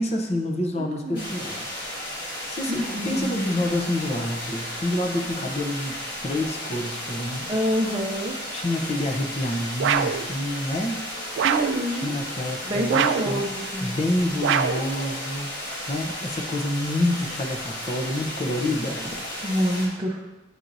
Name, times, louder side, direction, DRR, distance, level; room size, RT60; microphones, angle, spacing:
voice 1, 0.0-1.8 2.5-6.0 6.2-7.6 8.5-11.0 11.9-13.4 13.8-19.1, left 1 dB, 35° left, 2 dB, 0.7 m, -28 dB
voice 2, 0.8-1.3 2.7-3.5 7.5-8.3 11.4-12.2 12.7-14.0 19.4-20.2, equal, 25° right, -2 dB, 0.5 m, -27 dB
sound 1, 1.1-19.9, equal, 60° left, 1.7 m, -34 dB
sound 2, 9.8-10.3 11.4-11.8 12.9-13.4 14.4-14.9, right 7 dB, 75° right, 0.3 m, -23 dB
8.1 x 4.4 x 2.6 m, 1.0 s
head